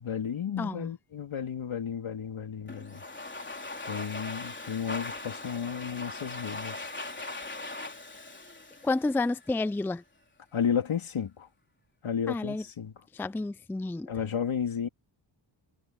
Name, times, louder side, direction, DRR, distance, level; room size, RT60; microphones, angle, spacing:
voice 1, 0.0-3.0 3.9-6.9 10.5-11.5 12.0-12.9 14.1-14.9, left 7 dB, 85° left, 3.7 m, -32 dB
voice 2, 0.6-0.9 8.8-10.0 12.3-12.6 13.1-14.1, left 2 dB, 5° left, 0.4 m, -30 dB
Domestic sounds home sounds, 2.7-9.6, left 2 dB, 25° left, 3.8 m, -40 dB
wide cardioid pair, 90°, 47 cm